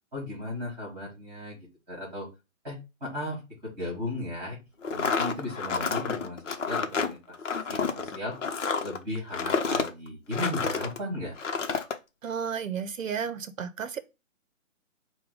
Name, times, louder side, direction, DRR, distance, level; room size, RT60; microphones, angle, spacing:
voice 1, 0.1-1.6 1.9-2.3 2.6-4.6 4.9-7.4 7.7-8.4 8.8-11.3, left 1 dB, 10° right, 1.7 m, -36 dB
sound 1, 4.8-11.0 11.4-12.0, left 5 dB, 65° left, 0.8 m, -29 dB
voice 2, 12.2-14.0, right 7 dB, 75° right, 0.7 m, -32 dB
5.0 x 2.3 x 4.6 m
hypercardioid pair, 180°, 40 cm